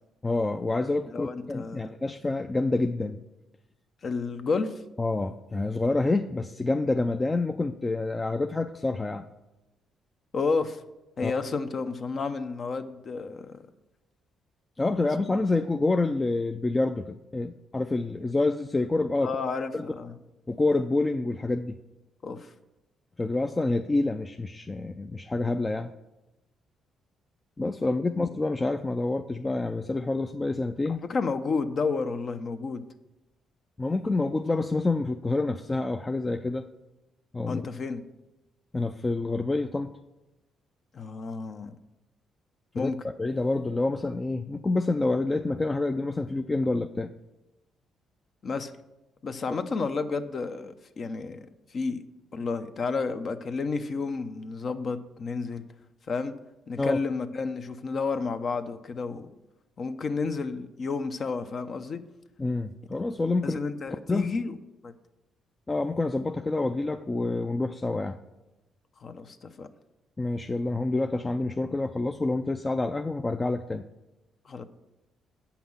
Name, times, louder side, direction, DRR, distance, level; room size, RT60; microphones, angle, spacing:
voice 1, 0.2-3.2 5.0-9.2 11.2-11.3 14.8-19.3 19.7-19.9 20.5-21.7 23.2-25.9 27.6-31.0 33.8-36.7 37.3-37.6 38.7-39.9 42.8-42.9 43.2-47.1 56.8-57.0 62.4-63.6 63.9-64.3 65.7-68.2 70.2-73.8, left 2 dB, 20° left, 6 dB, 0.4 m, -27 dB
voice 2, 1.1-1.9 4.0-4.7 10.3-10.8 11.2-13.6 19.2-20.2 22.2-22.5 28.1-28.3 31.1-32.8 37.5-38.0 40.9-41.7 42.7-43.0 48.4-48.7 49.2-51.4 51.7-52.0 52.3-55.7 56.1-56.4 56.7-59.3 59.8-62.0 63.4-64.6 64.8-64.9 69.0-69.7 74.5-74.6, left 4 dB, 50° left, 9 dB, 0.7 m, -31 dB
8.5 x 5.8 x 7.2 m, 1.0 s
cardioid pair, 90°, 0 cm